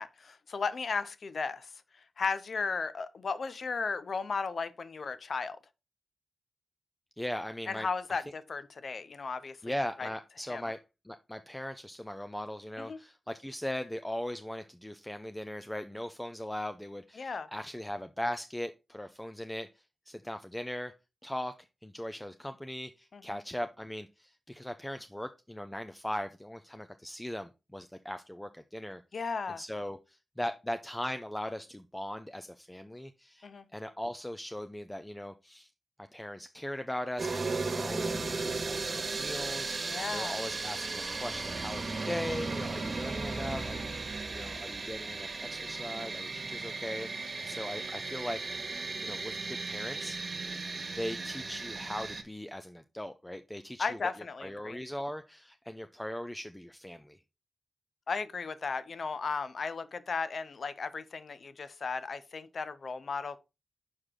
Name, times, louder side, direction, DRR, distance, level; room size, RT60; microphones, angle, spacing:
voice 1, 0.0-1.7 2.2-5.6 7.7-9.6 10.0-10.1 10.5-10.6 12.8-13.0 17.2-17.5 23.1-23.2 29.1-29.6 33.4-33.6 39.9-40.4 53.8-54.8 58.1-63.4, left 4 dB, 65° left, 0.6 m, -35 dB
voice 2, 7.2-8.2 9.6-20.9 21.2-29.0 29.5-35.7 36.0-47.1 47.4-50.5 50.9-54.1 54.4-57.2, left 1 dB, 10° left, 0.5 m, -39 dB
sound 1, 37.2-52.2, right 3 dB, 55° right, 1.4 m, -36 dB
6.3 x 4.9 x 3.7 m
cardioid pair, 55°, 0 cm